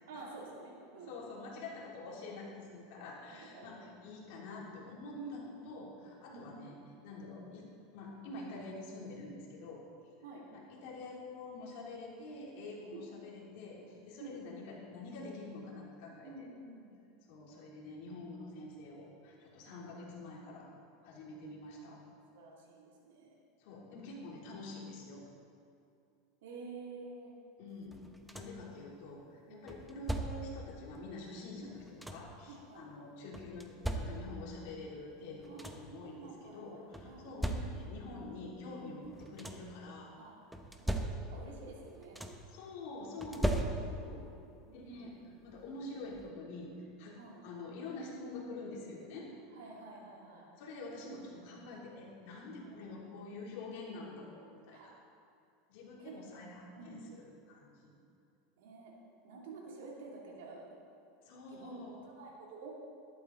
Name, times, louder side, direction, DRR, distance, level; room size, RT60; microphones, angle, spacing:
voice 1, 0.1-1.2 3.3-3.9 5.1-5.5 6.3-6.7 10.2-10.4 12.9-13.1 14.2-14.4 16.2-16.9 19.7-19.9 21.7-22.0 22.3-23.4 26.4-27.3 29.5-29.7 31.6-31.8 32.5-32.9 35.5-35.8 36.0-37.3 40.1-40.3 40.8-42.2 43.5-44.0 44.7-45.3 47.2-47.4 49.5-50.5 52.6-52.8 54.7-54.9 56.0-56.1 56.7-57.2 58.6-58.9 59.2-60.7 61.5-62.7, right 3 dB, 85° right, -3 dB, 2.9 m, -50 dB
voice 2, 1.0-6.8 7.0-7.7 7.9-9.8 10.5-16.5 17.3-20.7 21.0-22.0 23.6-25.3 27.6-29.2 29.5-31.8 32.1-40.1 42.5-44.3 44.7-47.2 47.4-49.3 50.6-54.9 55.7-57.9 61.2-62.1, left 2 dB, 65° left, -4 dB, 3.2 m, -47 dB
sound 1, 27.9-28.7 29.7-30.6 31.6-32.4 33.3-34.5 35.1-35.2 35.4-36.0 36.9-38.1 39.0-39.8 40.5-41.6 41.8-42.6 43.2-44.2 45.5-45.6 46.1-46.3, right 1 dB, 5° right, 0.8 m, -38 dB
13.0 x 11.5 x 4.0 m, 2.5 s
supercardioid pair, 140°, 0 cm